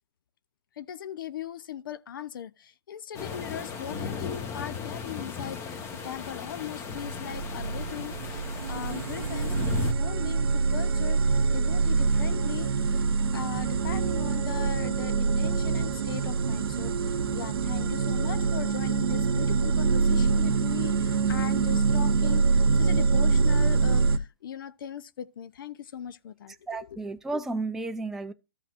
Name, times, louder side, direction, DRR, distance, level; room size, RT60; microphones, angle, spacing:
voice 1, 0.8-13.0 13.3-26.6 26.8-27.0, left 9 dB, 55° left, 0.7 m, -39 dB
sound 1, 3.1-9.9, left 6 dB, 20° left, 1.3 m, -36 dB
sound 2, 7.0-24.2, right 4 dB, 65° right, 0.9 m, -25 dB
voice 2, 26.7-28.3, right 3 dB, 5° right, 0.4 m, -32 dB
14.0 x 5.8 x 2.5 m
hypercardioid pair, 140°, 13 cm